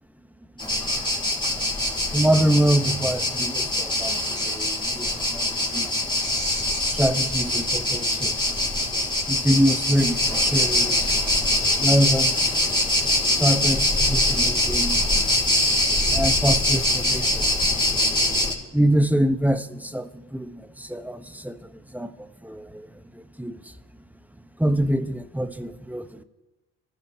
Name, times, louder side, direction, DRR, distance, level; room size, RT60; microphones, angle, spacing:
sound 1, 0.6-18.5, left 1 dB, 10° left, 5.6 m, -23 dB
voice 1, 2.1-6.0 6.8-8.5 9.3-11.2 11.8-12.6 13.3-15.0 16.1-17.5 17.8-17.9 18.7-22.9 23.1-23.7 24.6-26.2, equal, 5° right, 1.0 m, -25 dB
27.5 x 14.5 x 2.9 m
hypercardioid pair, 55°, 38 cm